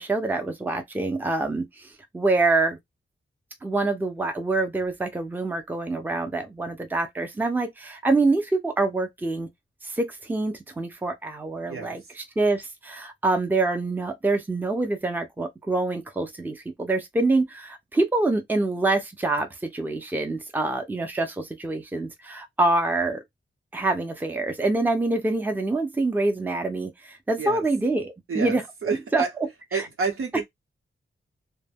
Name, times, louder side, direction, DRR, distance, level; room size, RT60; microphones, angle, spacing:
voice 1, 0.0-1.9 2.1-2.8 3.6-9.5 9.9-23.2 23.7-28.6 29.1-29.2 29.7-29.8, right 2 dB, 10° right, 0.5 m, -26 dB
voice 2, 28.3-29.3 29.7-30.4, right 5 dB, 85° right, 0.9 m, -29 dB
2.1 x 2.1 x 3.3 m
wide cardioid pair, 145°, 21 cm